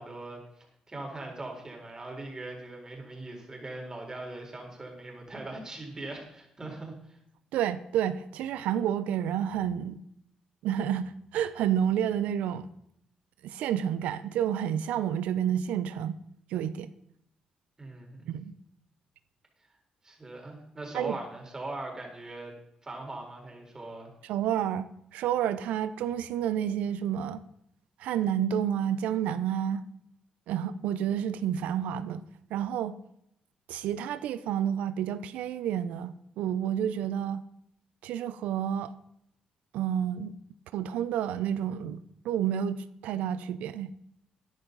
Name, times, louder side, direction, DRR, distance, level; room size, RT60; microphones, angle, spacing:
voice 1, 0.0-7.2 17.8-18.3 20.0-22.5 22.8-24.1, right 2 dB, 25° right, 4.4 m, -40 dB
voice 2, 7.5-10.0 10.6-12.7 13.4-16.2 16.5-16.9 18.3-18.5 20.9-21.2 24.2-24.9 25.1-27.4 28.0-29.8 30.5-32.2 32.5-32.9 33.7-37.4 38.0-38.9 39.7-40.3 40.7-43.9, right 9 dB, 85° right, 0.6 m, -30 dB
13.5 x 10.5 x 4.0 m
cardioid pair, 70°, 2 cm